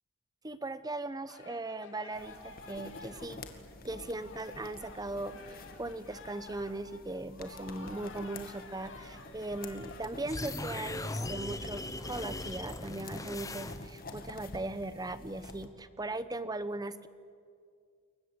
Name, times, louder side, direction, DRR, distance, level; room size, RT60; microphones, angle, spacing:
voice 1, 0.4-3.4 3.8-17.1, right 2 dB, 15° right, 13 dB, 0.9 m, -39 dB
sound 1, 1.3-10.0, left 4 dB, 55° left, 2.9 m, -52 dB
sound 2, 2.1-15.7, left 2 dB, 40° left, 2.1 m, -49 dB
sound 3, 10.3-14.1, left 2 dB, 15° left, 0.9 m, -39 dB
28.5 x 23.0 x 8.1 m, 2.2 s
head